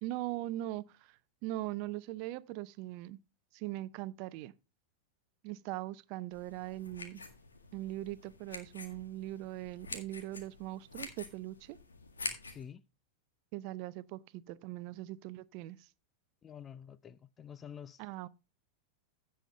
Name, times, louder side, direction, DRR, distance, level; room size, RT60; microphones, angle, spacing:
voice 1, 0.0-3.2 3.5-4.5 5.4-7.2 7.7-11.8 13.5-15.9 18.0-18.3, right 16 dB, 45° right, 0.5 m, -40 dB
sound 1, 6.3-12.6, left 3 dB, 75° left, 1.8 m, -46 dB
voice 2, 12.5-12.8 16.4-18.0, left 8 dB, 20° left, 0.5 m, -48 dB
16.0 x 5.7 x 3.3 m
figure-of-eight pair, 90°, 0 cm